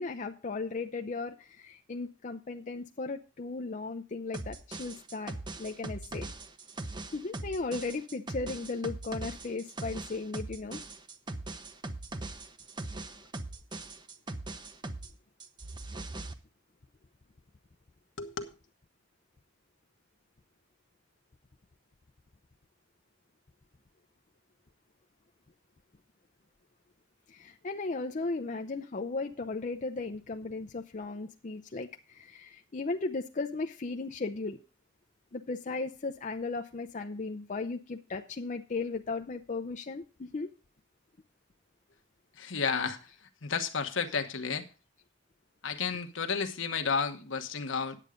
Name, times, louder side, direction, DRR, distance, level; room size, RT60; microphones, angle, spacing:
voice 1, 0.0-6.3 7.1-10.8 27.3-34.6 35.3-40.5, left 3 dB, 40° left, 0.6 m, -36 dB
sound 1, 4.3-15.1 15.4-16.3, right 2 dB, 25° right, 0.8 m, -40 dB
voice 2, 18.2-18.5 42.4-43.0 43.4-44.7 45.6-48.0, left 5 dB, 75° left, 1.2 m, -32 dB
10.0 x 8.1 x 5.0 m
head